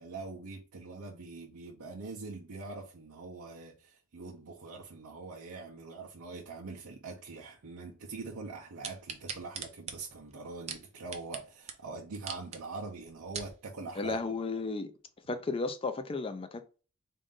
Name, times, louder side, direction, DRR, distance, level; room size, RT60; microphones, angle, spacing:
voice 1, 0.0-14.2, right 3 dB, 75° right, 0.7 m, -43 dB
sound 1, 8.8-11.4 11.7-11.8 12.1-12.6 13.1-13.5 14.2-14.3, right 6 dB, 30° right, 0.5 m, -40 dB
voice 2, 14.0-14.9 15.3-16.8, left 3 dB, 25° left, 0.4 m, -34 dB
3.7 x 2.5 x 3.7 m
head